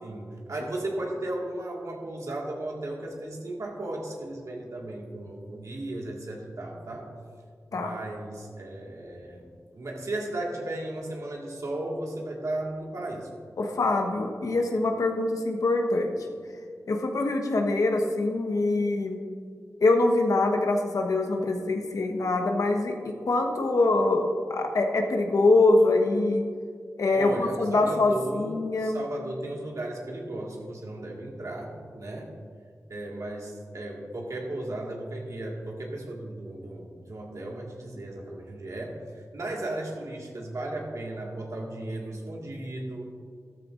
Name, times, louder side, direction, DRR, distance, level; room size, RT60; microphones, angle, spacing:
voice 1, 0.0-7.1 7.7-13.3 27.1-32.3 32.9-43.1, right 1 dB, 70° right, -1 dB, 1.8 m, -35 dB
voice 2, 13.6-16.1 16.9-19.2 19.8-26.4 27.0-29.0, left 2 dB, 80° left, 3 dB, 1.2 m, -24 dB
13.0 x 13.0 x 2.5 m, 2.1 s
wide cardioid pair, 65°, 6 cm